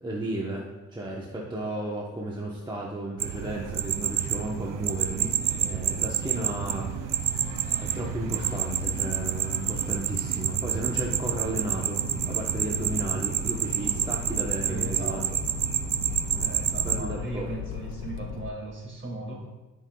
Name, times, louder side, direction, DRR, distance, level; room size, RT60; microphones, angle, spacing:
voice 1, 0.0-7.4 7.8-15.2 16.4-16.6 16.8-17.5, right 1 dB, 15° right, -3 dB, 1.0 m, -34 dB
sound 1, 3.2-17.0, right 9 dB, 85° right, 0.6 m, -29 dB
Accelerating revving vroom, 8.0-18.5, left 7 dB, 85° left, 0.5 m, -39 dB
voice 2, 14.7-15.4 16.4-19.5, right 2 dB, 40° right, -1 dB, 2.2 m, -37 dB
12.5 x 5.7 x 2.3 m, 1.1 s
cardioid pair, 95°, 31 cm